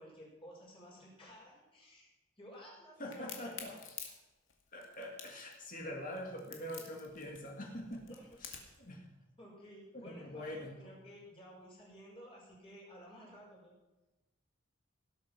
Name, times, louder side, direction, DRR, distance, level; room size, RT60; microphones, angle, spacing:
voice 1, 0.0-2.1 2.4-3.5 8.1-8.8 9.4-13.7, equal, 25° left, -3 dB, 5.9 m, -54 dB
voice 2, 3.0-3.8 4.7-8.0 8.4-8.5 8.8-9.0 9.9-10.8, left 1 dB, 45° left, 1 dB, 2.2 m, -44 dB
Crack, 3.1-8.8, left 8 dB, 75° left, 2.3 m, -48 dB
17.5 x 8.4 x 6.0 m, 1.1 s
head